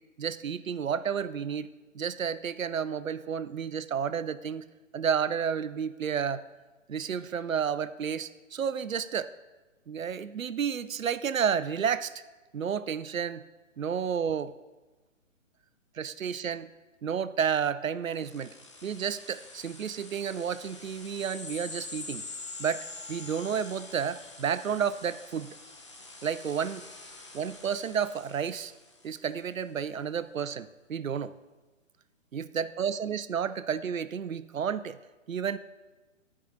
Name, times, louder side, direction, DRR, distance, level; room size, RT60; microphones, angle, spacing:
voice 1, 0.2-1.7 1.9-4.6 4.9-6.4 6.9-9.3 9.9-12.1 12.5-13.4 13.8-14.5 16.0-16.7 17.0-18.5 18.8-22.2 22.6-25.5 26.2-26.9 27.3-28.7 29.0-31.3 32.3-35.0 35.3-35.6, right 7 dB, 80° right, 14 dB, 0.5 m, -31 dB
sound 1, 18.1-29.2, left 3 dB, 25° left, 0.5 m, -45 dB
13.0 x 4.9 x 4.1 m, 1.2 s
figure-of-eight pair, 130°, 40 cm